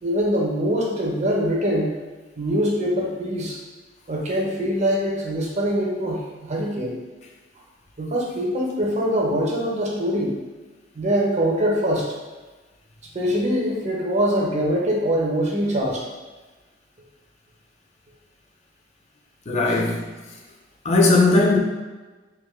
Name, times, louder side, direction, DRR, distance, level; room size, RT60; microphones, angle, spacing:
voice 1, 0.0-2.0 2.4-3.6 4.1-7.0 8.0-10.4 10.9-12.1 13.1-16.0, equal, 40° right, -2 dB, 0.7 m, -23 dB
voice 2, 19.5-20.1 20.8-21.6, left 2 dB, 35° left, -1 dB, 0.4 m, -18 dB
3.6 x 2.7 x 3.1 m, 1.3 s
head